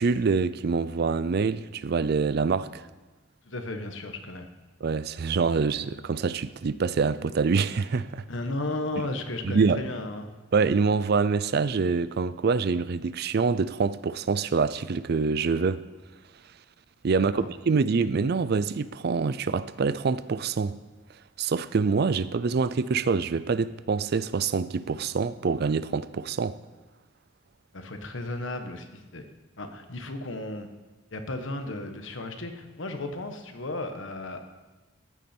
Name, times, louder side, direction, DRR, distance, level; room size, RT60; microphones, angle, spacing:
voice 1, 0.0-2.8 4.8-8.2 9.4-9.8 10.5-15.8 17.0-20.8 21.4-26.6, right 4 dB, 55° right, 0.4 m, -25 dB
voice 2, 3.4-4.5 8.3-10.3 17.3-17.5 27.7-29.2 29.6-30.7 31.1-34.4, left 2 dB, 70° left, 1.3 m, -34 dB
14.5 x 8.5 x 4.4 m
head